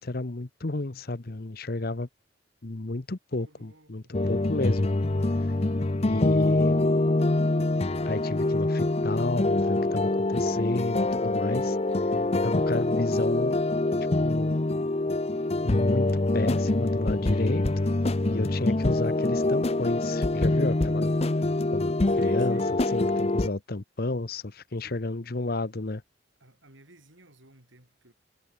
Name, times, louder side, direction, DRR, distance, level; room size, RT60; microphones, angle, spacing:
voice 1, 0.0-2.1 2.6-4.9 6.1-6.8 8.1-11.8 12.4-13.6 14.2-14.5 15.6-17.9 18.3-21.1 21.7-21.9 22.2-22.6 22.9-26.0, left 2 dB, 50° left, 1.0 m, -32 dB
voice 2, 3.4-4.1 22.1-22.7 24.8-24.9 26.4-28.1, right 2 dB, 75° right, 7.0 m, -55 dB
sound 1, 4.1-23.5, left 2 dB, 30° left, 0.7 m, -25 dB
head